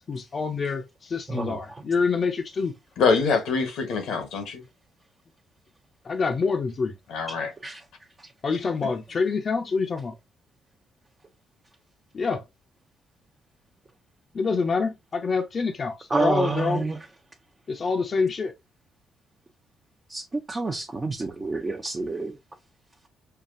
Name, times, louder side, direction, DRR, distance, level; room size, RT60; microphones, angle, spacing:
voice 1, 0.0-2.7 6.0-6.9 8.4-10.1 12.1-12.4 14.3-16.9 17.7-18.5, left 4 dB, 45° left, 0.7 m, -26 dB
voice 2, 1.3-1.8 7.6-7.8 8.2-8.3 16.1-17.0 20.1-22.4, right 3 dB, 30° right, 0.7 m, -28 dB
voice 3, 3.0-4.6 7.1-7.5 8.8-8.9, left 5 dB, 80° left, 1.1 m, -24 dB
5.7 x 2.3 x 2.5 m
supercardioid pair, 70°, 0 cm